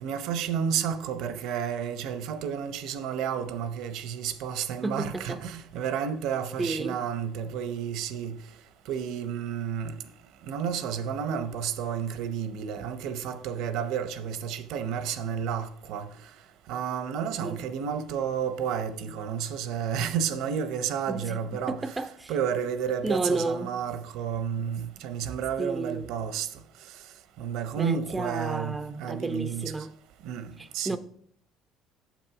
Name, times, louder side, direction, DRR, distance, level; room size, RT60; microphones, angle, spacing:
voice 1, 0.0-8.3 8.9-9.9 10.5-16.1 16.7-22.0 22.3-26.5 27.4-29.7 30.2-31.0, right 8 dB, 75° right, 0.7 m, -31 dB
voice 2, 4.8-5.4 6.6-7.0 17.4-17.6 21.1-21.4 21.7-22.3 23.0-23.7 25.6-26.1 27.7-29.9 30.6-31.0, right 2 dB, 15° right, 0.3 m, -31 dB
7.5 x 6.0 x 4.7 m
cardioid pair, 145°, 0 cm